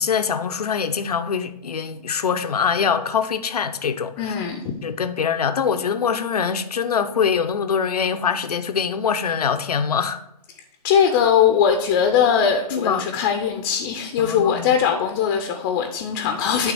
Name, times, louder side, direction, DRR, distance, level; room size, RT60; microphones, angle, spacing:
voice 1, 0.0-4.3 4.8-10.2 12.7-13.1 14.2-14.8, left 6 dB, 75° left, 0.6 m, -23 dB
voice 2, 4.2-4.8 10.8-16.7, left 8 dB, 30° left, 0.6 m, -20 dB
8.9 x 3.4 x 4.8 m
figure-of-eight pair, 130°, 20 cm